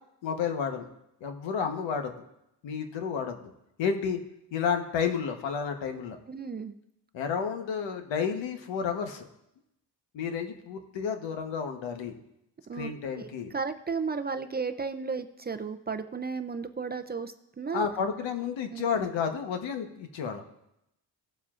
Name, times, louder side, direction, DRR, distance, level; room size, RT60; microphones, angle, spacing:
voice 1, 0.2-0.9 1.2-2.1 2.6-3.4 3.8-4.2 4.5-6.2 7.1-9.3 10.1-12.2 12.8-13.5 17.7-20.4, left 6 dB, 80° left, 5 dB, 1.2 m, -31 dB
voice 2, 6.3-6.7 12.7-12.9 13.1-17.9 18.7-18.8, right 5 dB, 25° right, 8 dB, 0.4 m, -34 dB
18.0 x 7.3 x 2.5 m, 0.85 s
cardioid pair, 110°, 44 cm